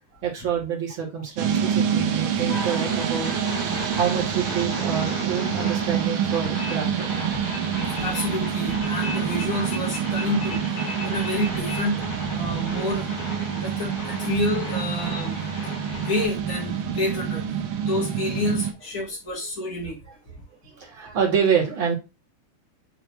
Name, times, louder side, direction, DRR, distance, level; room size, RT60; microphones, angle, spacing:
voice 1, 0.2-3.3 3.9-7.1 10.1-10.3 13.5-13.6 20.6-21.9, right 7 dB, 40° right, 2.7 m, -27 dB
sound 1, 1.4-18.7, right 8 dB, 80° right, 1.2 m, -27 dB
sound 2, 2.5-16.2, left 2 dB, 70° left, 3.6 m, -36 dB
voice 2, 8.0-10.6 11.0-12.0 12.3-15.4 16.0-17.4 17.8-20.0, left 1 dB, 40° left, 1.3 m, -28 dB
9.6 x 3.4 x 2.9 m
omnidirectional pair, 3.6 m